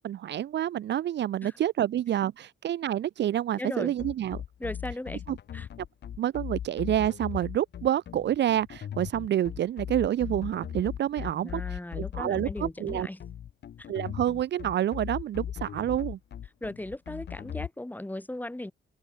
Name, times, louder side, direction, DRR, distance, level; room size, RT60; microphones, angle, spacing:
voice 1, 0.0-4.4 5.3-5.4 6.2-13.1 13.9-16.2, right 11 dB, 60° right, 0.8 m, -28 dB
voice 2, 3.6-3.9 4.6-5.2 5.5-5.7 11.2-13.2 13.8-13.9 16.6-18.7, left 1 dB, 10° left, 4.6 m, -37 dB
sound 1, 4.0-17.7, left 9 dB, 60° left, 2.3 m, -38 dB
open air
cardioid pair, 90°, 20 cm